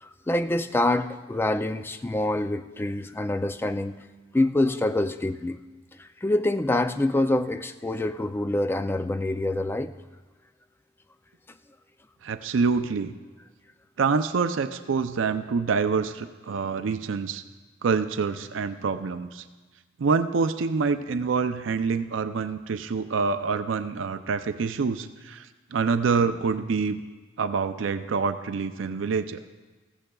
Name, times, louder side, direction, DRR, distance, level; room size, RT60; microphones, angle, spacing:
voice 1, 0.0-4.0 4.3-5.6 6.0-9.9, left 1 dB, 10° left, 10 dB, 0.3 m, -26 dB
voice 2, 12.2-13.1 14.0-17.4 17.8-19.5 20.0-27.0 27.4-29.4, right 5 dB, 70° right, 10 dB, 0.4 m, -26 dB
15.0 x 15.0 x 2.3 m, 1.3 s
head